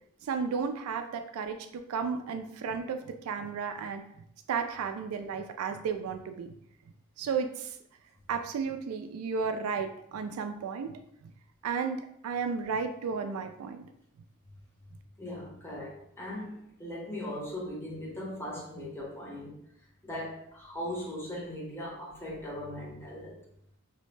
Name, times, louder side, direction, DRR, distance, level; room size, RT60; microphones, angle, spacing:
voice 1, 0.2-4.0 4.5-6.6 7.2-7.8 8.3-11.3 11.6-13.8, right 5 dB, 85° right, 7 dB, 0.3 m, -33 dB
voice 2, 15.2-19.6 20.0-23.4, left 1 dB, 10° left, -5 dB, 0.7 m, -39 dB
2.6 x 2.0 x 3.1 m, 0.71 s
head